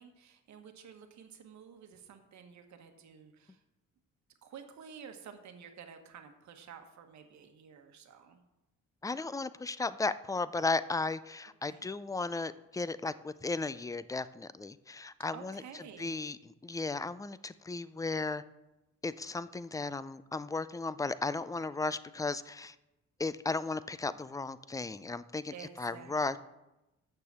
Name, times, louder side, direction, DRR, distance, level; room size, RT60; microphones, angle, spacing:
voice 1, 0.0-3.6 4.4-8.4 11.6-11.9 15.3-16.2 25.5-26.4, right 7 dB, 65° right, 6 dB, 1.3 m, -51 dB
voice 2, 9.0-15.6 16.0-18.4 19.0-22.8 23.2-26.4, left 3 dB, 10° left, 16 dB, 0.3 m, -35 dB
6.8 x 6.8 x 7.4 m, 0.98 s
cardioid pair, 90°, 30 cm